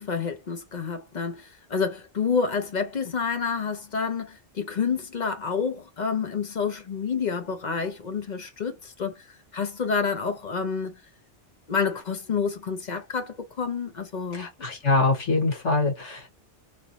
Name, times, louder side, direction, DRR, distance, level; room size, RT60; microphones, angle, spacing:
voice 1, 0.0-11.0 11.7-14.5, left 5 dB, 45° left, 0.6 m, -29 dB
voice 2, 14.3-16.3, left 3 dB, 90° left, 1.8 m, -24 dB
3.3 x 2.6 x 2.8 m
omnidirectional pair, 1.2 m